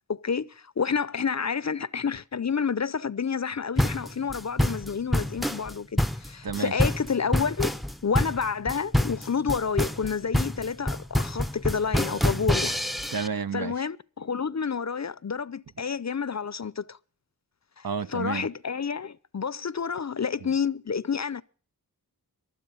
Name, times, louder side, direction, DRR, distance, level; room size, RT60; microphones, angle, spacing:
voice 1, 0.1-12.8 13.5-17.0 17.8-21.4, left 6 dB, 45° left, 0.6 m, -29 dB
sound 1, 3.8-13.3, left 1 dB, ahead, 0.6 m, -26 dB
voice 2, 13.1-13.7 17.8-18.4, right 6 dB, 65° right, 0.8 m, -30 dB
23.0 x 7.7 x 5.6 m
wide cardioid pair, 65°, 37 cm